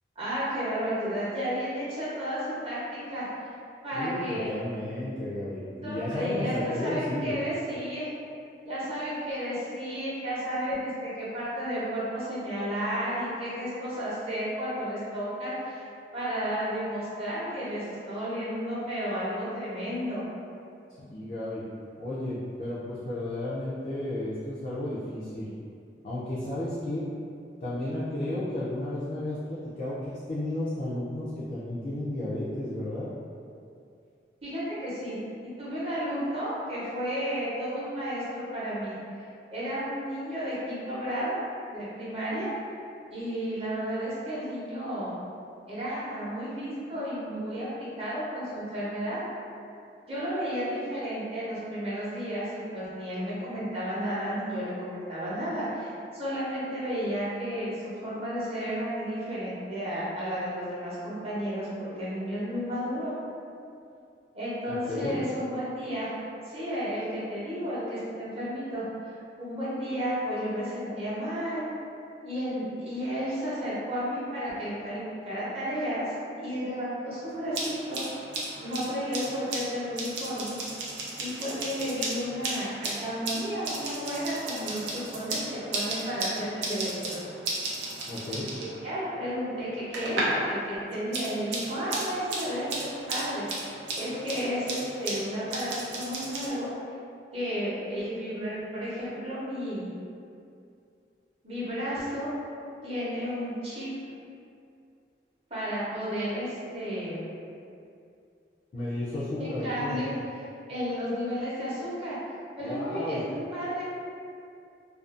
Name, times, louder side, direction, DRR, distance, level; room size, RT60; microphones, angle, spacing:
voice 1, 0.2-3.3 3.8-4.5 5.7-8.0 8.6-15.8 16.1-20.2 34.4-39.0 39.5-41.4 41.7-42.5 43.1-45.1 45.7-49.2 50.1-63.1 64.3-66.1 66.4-68.8 69.4-71.7 72.2-76.1 76.4-78.0 78.6-80.6 81.2-87.2 88.6-96.7 97.3-99.9 101.4-102.3 102.8-103.9 105.5-107.2 109.4-110.2 110.7-112.2 112.6-113.8, equal, 35° right, -10 dB, 0.7 m, -32 dB
voice 2, 3.9-7.3 21.0-21.6 22.0-25.5 26.0-27.1 27.6-33.1 64.7-65.2 88.1-88.5 108.7-110.0 112.6-113.2, left 1 dB, 45° left, -9 dB, 0.3 m, -33 dB
sound 1, 77.3-90.5 90.8-96.5, right 2 dB, 80° right, 0.5 m, -35 dB
2.4 x 2.3 x 2.4 m, 2.5 s
head